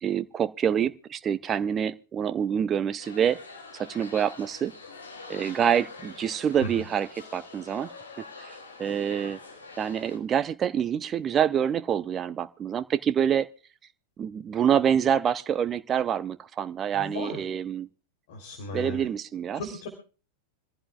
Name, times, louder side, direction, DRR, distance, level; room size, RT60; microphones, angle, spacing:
voice 1, 0.0-3.4 3.7-4.7 5.3-7.9 8.4-9.4 9.8-13.5 14.2-17.9 18.7-19.6, right 8 dB, 25° right, 0.6 m, -26 dB
sound 1, 3.0-10.2, left 3 dB, 75° left, 3.6 m, -45 dB
voice 2, 16.9-17.4 18.3-19.1 19.5-19.9, left 2 dB, 50° left, 3.3 m, -36 dB
26.5 x 15.0 x 2.4 m
figure-of-eight pair, 90°, 0 cm